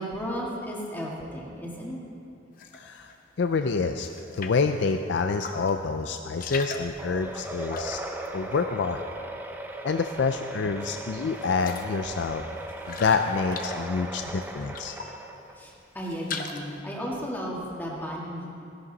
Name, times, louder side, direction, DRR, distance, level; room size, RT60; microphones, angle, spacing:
voice 1, 0.0-2.0 14.9-15.2 15.5-18.5, equal, 10° left, -3 dB, 1.8 m, -34 dB
sound 1, 2.6-3.2 3.5-4.7 5.3-5.8 6.1-9.5 9.8-10.5 10.9-11.0 11.3-15.3 15.7-16.8, left 4 dB, 45° left, 0.8 m, -40 dB
voice 2, 2.7-3.1 3.4-4.1 4.3-8.0 8.3-9.0 9.8-12.4 12.9-14.9, left 4 dB, 65° left, 7 dB, 0.4 m, -27 dB
sound 2, 7.0-15.7, right 1 dB, 10° right, 0.7 m, -38 dB
16.5 x 11.0 x 4.0 m, 2.6 s
head